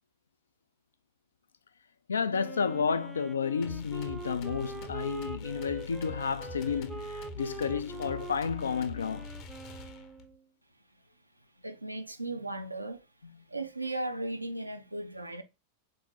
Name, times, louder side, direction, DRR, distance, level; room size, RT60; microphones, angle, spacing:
voice 1, 2.1-9.3, left 6 dB, 70° left, 0.3 m, -31 dB
Wind instrument woodwind instrument, 2.3-10.4, right 4 dB, 10° right, 0.4 m, -44 dB
sound 1, 3.6-10.3, left 3 dB, 40° left, 0.7 m, -44 dB
voice 2, 11.6-13.1 13.5-15.4, right 2 dB, 85° right, 0.5 m, -36 dB
3.8 x 3.0 x 3.5 m
figure-of-eight pair, 90°, 0 cm